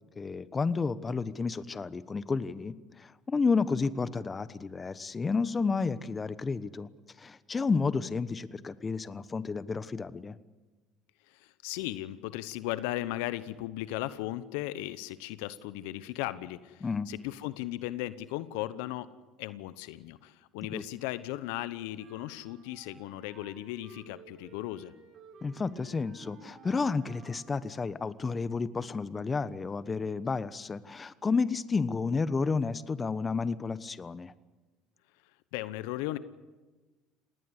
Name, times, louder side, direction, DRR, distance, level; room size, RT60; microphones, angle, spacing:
voice 1, 0.2-6.9 7.2-10.4 16.8-17.1 20.7-20.8 25.4-34.3, left 4 dB, 25° left, 15 dB, 1.1 m, -31 dB
voice 2, 11.3-19.1 19.4-24.9 35.5-36.2, left 16 dB, 75° left, 15 dB, 0.9 m, -37 dB
sound 1, 22.0-27.7, right 4 dB, 55° right, 3.9 m, -54 dB
27.5 x 19.0 x 8.2 m, 1.2 s
hypercardioid pair, 75°, 0 cm